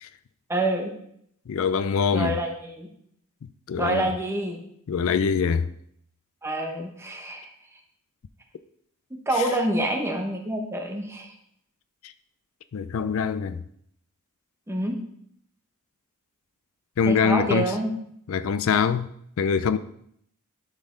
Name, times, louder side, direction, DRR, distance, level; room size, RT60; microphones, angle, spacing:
voice 1, 0.5-0.9 2.1-2.9 3.8-4.6 6.4-7.5 9.1-11.3 14.7-15.0 17.1-17.9, right 1 dB, 10° right, 0.9 m, -27 dB
voice 2, 1.5-2.4 3.7-4.1 4.9-5.7 9.3-9.5 12.0-12.1 12.7-13.6 17.0-17.7 18.3-19.1 19.4-19.8, left 6 dB, 65° left, 0.4 m, -24 dB
11.5 x 4.2 x 3.8 m
head